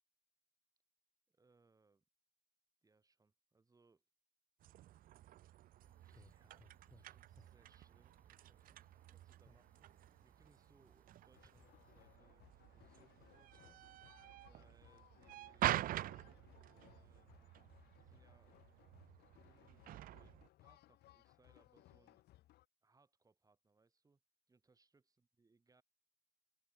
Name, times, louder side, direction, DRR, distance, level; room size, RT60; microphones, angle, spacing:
voice 1, 1.3-2.0 2.8-4.0 5.8-13.8 14.4-15.8 16.7-17.7 18.0-18.6 19.4-19.9 20.2-22.2 22.8-24.2 24.5-25.8, right 3 dB, 20° right, 5.4 m, -74 dB
sound 1, 4.6-20.5, right 14 dB, 55° right, 0.5 m, -47 dB
sound 2, 5.8-12.2, left 1 dB, 10° left, 7.0 m, -70 dB
sound 3, 11.3-22.7, left 15 dB, 70° left, 1.4 m, -66 dB
open air
cardioid pair, 110°, 17 cm